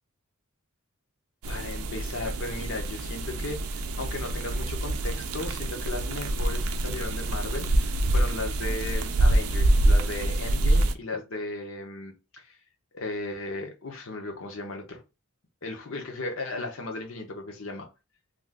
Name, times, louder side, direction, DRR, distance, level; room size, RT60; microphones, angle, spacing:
sound 1, 1.4-10.9, right 1 dB, 75° right, 0.4 m, -26 dB
voice 1, 1.5-12.6 12.9-15.0 15.6-17.9, left 2 dB, 65° left, 0.7 m, -36 dB
2.5 x 2.4 x 3.3 m
head